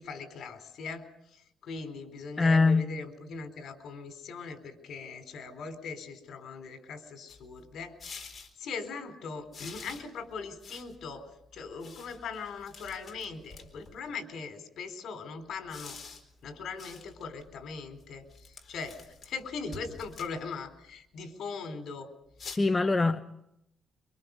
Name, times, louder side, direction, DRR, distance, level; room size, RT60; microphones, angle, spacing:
voice 1, 0.0-8.0 8.6-16.0 16.4-22.1 22.4-22.5, left 5 dB, 70° left, 4.2 m, -40 dB
voice 2, 2.4-2.8 22.5-23.2, left 3 dB, 20° left, 1.0 m, -23 dB
sound 1, 7.3-8.5 9.5-14.1 15.5-20.9 22.3-22.6, left 4 dB, 40° left, 4.0 m, -49 dB
26.5 x 25.0 x 5.4 m
cardioid pair, 105°, 0 cm